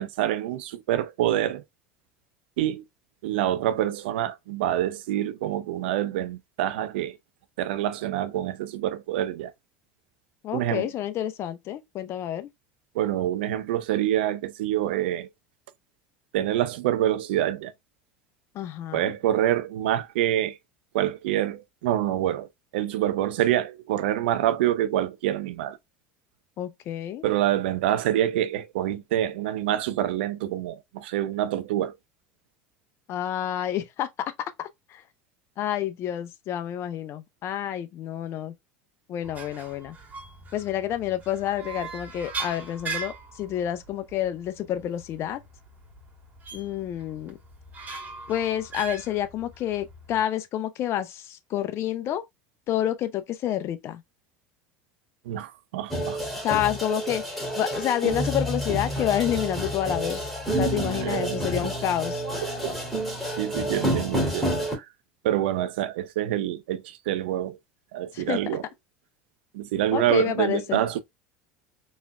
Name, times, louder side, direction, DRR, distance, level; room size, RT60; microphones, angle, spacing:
voice 1, 0.0-1.6 2.6-2.8 3.2-7.2 7.6-9.5 10.5-10.9 12.9-15.3 16.3-17.7 18.9-20.6 20.9-22.5 22.7-25.8 27.2-31.9 55.3-56.4 60.6-61.7 62.4-62.8 63.4-64.8 65.2-67.6 67.9-68.6 69.5-71.0, right 12 dB, 80° right, 0.6 m, -26 dB
voice 2, 10.4-12.5 18.5-19.1 26.6-27.2 33.1-34.3 34.6-35.0 35.6-38.5 39.1-39.9 40.5-45.4 46.5-47.4 48.3-52.2 52.7-54.0 56.4-60.2 60.6-62.2 68.1-68.6 69.9-70.8, left 11 dB, 50° left, 0.6 m, -29 dB
sound 1, 39.2-50.2, right 4 dB, 30° right, 2.1 m, -40 dB
sound 2, 55.9-64.7, equal, 5° left, 2.5 m, -29 dB
4.2 x 3.5 x 2.2 m
hypercardioid pair, 85°, 6 cm